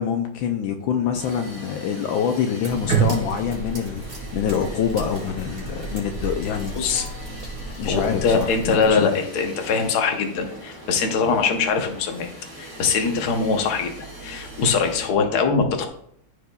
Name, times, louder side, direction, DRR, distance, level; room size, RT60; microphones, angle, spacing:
voice 1, 0.0-7.1 7.8-9.1, left 7 dB, 75° left, 5 dB, 1.3 m, -26 dB
sound 1, 1.2-15.1, equal, 10° right, 2.5 m, -41 dB
sound 2, 2.6-8.9, right 5 dB, 30° right, 2.4 m, -30 dB
voice 2, 6.8-7.1 7.9-12.3 12.6-13.9 14.2-15.9, left 5 dB, 55° left, 4 dB, 1.3 m, -22 dB
14.0 x 4.8 x 2.3 m, 0.68 s
omnidirectional pair, 2.3 m